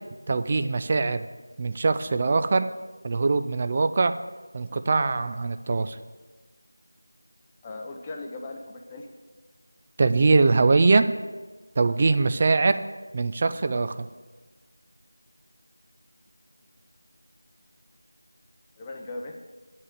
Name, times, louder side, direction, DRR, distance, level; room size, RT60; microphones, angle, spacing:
voice 1, 0.3-1.3 1.6-2.7 3.0-4.1 4.5-6.0 10.0-11.1 11.8-12.8 13.1-14.1, right 3 dB, 30° right, 10 dB, 0.3 m, -22 dB
voice 2, 7.6-9.1 18.8-19.4, left 2 dB, 15° left, 2 dB, 0.6 m, -38 dB
8.5 x 5.5 x 6.8 m, 1.3 s
figure-of-eight pair, 170°, 0 cm